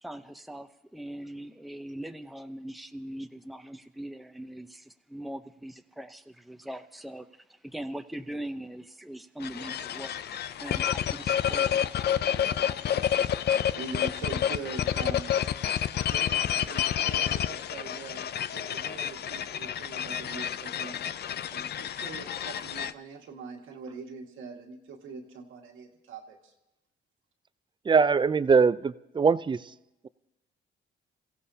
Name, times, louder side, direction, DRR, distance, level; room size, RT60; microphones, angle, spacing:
voice 1, 0.0-7.3 7.6-10.2 10.6-11.8, right 1 dB, ahead, 7 dB, 0.8 m, -41 dB
sound 1, 9.4-22.9, left 9 dB, 55° left, 0.5 m, -29 dB
voice 2, 13.5-15.3 16.1-21.0 21.5-26.5, right 4 dB, 80° right, 2 dB, 1.9 m, -43 dB
voice 3, 27.8-29.7, right 5 dB, 25° right, 17 dB, 0.4 m, -22 dB
28.0 x 15.5 x 2.8 m, 0.90 s
cardioid pair, 90°, 20 cm